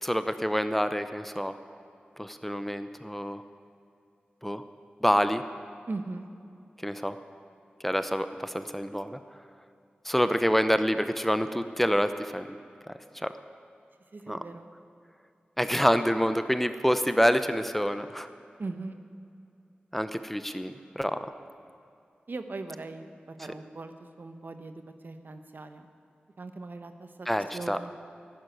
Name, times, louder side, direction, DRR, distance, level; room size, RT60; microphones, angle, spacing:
voice 1, 0.0-1.6 2.2-3.4 4.4-4.6 5.0-5.4 6.8-7.2 7.8-9.2 10.0-12.6 12.9-13.3 14.3-14.4 15.6-18.3 19.9-21.2 27.3-27.8, equal, 5° left, 10 dB, 0.8 m, -27 dB
voice 2, 5.9-6.3 14.1-14.7 18.6-19.0 22.3-25.9 26.4-27.3 27.5-27.9, right 3 dB, 60° right, 8 dB, 1.1 m, -39 dB
12.0 x 11.0 x 9.3 m, 2.5 s
cardioid pair, 45°, 4 cm